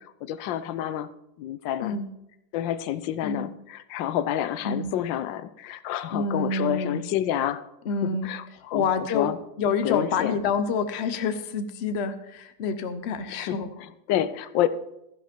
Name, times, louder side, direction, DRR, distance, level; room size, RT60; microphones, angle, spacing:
voice 1, 0.2-1.1 1.4-1.9 2.5-7.6 8.0-8.9 9.1-9.4 9.8-10.4 13.4-14.7, left 11 dB, 90° left, 14 dB, 1.4 m, -28 dB
voice 2, 6.1-7.0 7.8-9.3 9.6-13.7, left 5 dB, 50° left, 10 dB, 0.9 m, -28 dB
13.5 x 10.5 x 4.4 m, 0.86 s
omnidirectional pair, 2.0 m